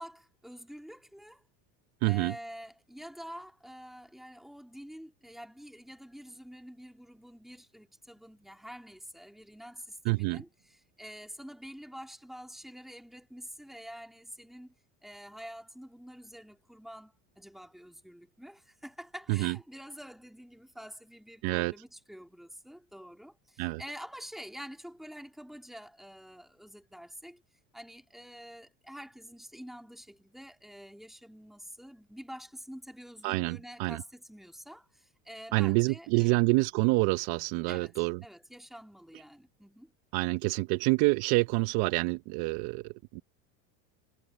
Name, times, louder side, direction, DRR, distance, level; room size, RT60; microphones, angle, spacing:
voice 1, 0.0-1.4 2.0-14.7 15.0-27.4 27.7-36.4 37.7-37.9 38.2-39.9, equal, ahead, 3.2 m, -47 dB
voice 2, 2.0-2.3 10.0-10.4 19.3-19.6 21.4-21.7 23.6-23.8 33.2-34.0 35.5-38.2 40.1-43.2, right 24 dB, 65° right, 0.9 m, -27 dB
supercardioid pair, 100°, 40 cm